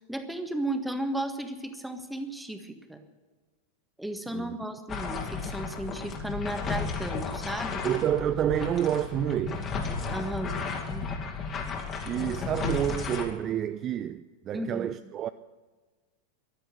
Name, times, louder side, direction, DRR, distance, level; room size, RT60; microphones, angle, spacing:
voice 1, 0.0-3.0 4.0-7.8 10.1-10.6 10.9-11.1 14.5-14.9, right 1 dB, 5° right, 1.6 m, -34 dB
sound 1, 4.9-13.3, left 4 dB, 25° left, 2.3 m, -33 dB
voice 2, 7.8-9.7 12.1-15.3, right 10 dB, 30° right, 0.5 m, -29 dB
14.0 x 12.0 x 7.8 m
figure-of-eight pair, 90°, 0 cm